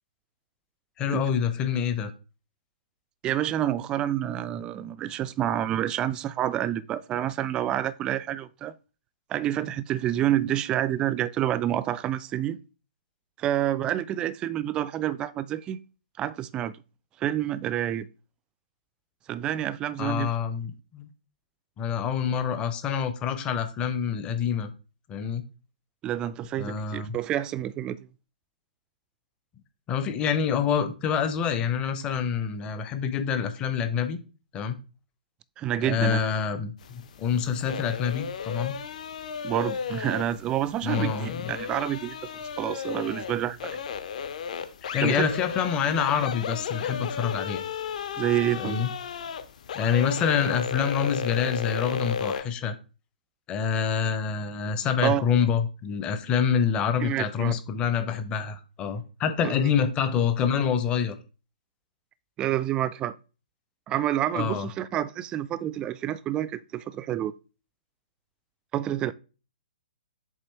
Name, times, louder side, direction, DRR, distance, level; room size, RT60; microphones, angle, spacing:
voice 1, 1.0-2.1 20.0-21.1 21.8-24.7 25.1-25.4 26.6-27.2 29.9-34.2 34.5-34.8 35.8-38.8 40.8-41.4 44.9-47.6 48.6-48.9 49.7-52.8 53.5-61.2 64.3-64.7, left 7 dB, 20° left, 0.7 m, -26 dB
voice 2, 3.2-8.7 9.3-12.6 13.4-15.8 16.2-16.8 17.2-18.1 19.3-20.3 26.0-28.1 35.6-36.2 39.4-43.8 45.0-45.2 48.2-48.8 55.0-55.2 57.0-57.6 59.4-59.7 62.4-63.2 63.9-67.3 68.7-69.1, right 12 dB, 20° right, 0.3 m, -28 dB
sound 1, 36.8-52.4, left 7 dB, 50° left, 0.8 m, -34 dB
7.2 x 3.1 x 4.4 m
figure-of-eight pair, 125°, 5 cm